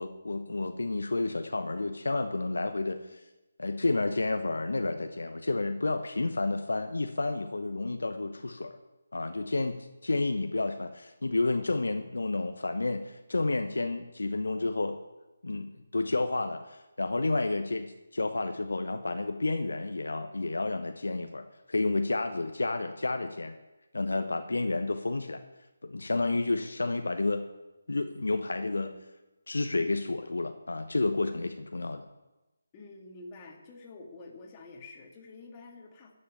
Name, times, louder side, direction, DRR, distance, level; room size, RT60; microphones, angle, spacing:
voice 1, 0.0-3.2 3.6-8.8 9.1-9.8 10.0-15.0 15.4-23.5 23.9-25.4 25.8-27.4 27.9-28.9 29.5-32.0, left 2 dB, 65° left, 7 dB, 1.0 m, -30 dB
voice 2, 32.7-36.1, left 3 dB, 20° left, 0 dB, 2.2 m, -48 dB
14.0 x 6.7 x 9.1 m, 1.1 s
figure-of-eight pair, 150°, 0 cm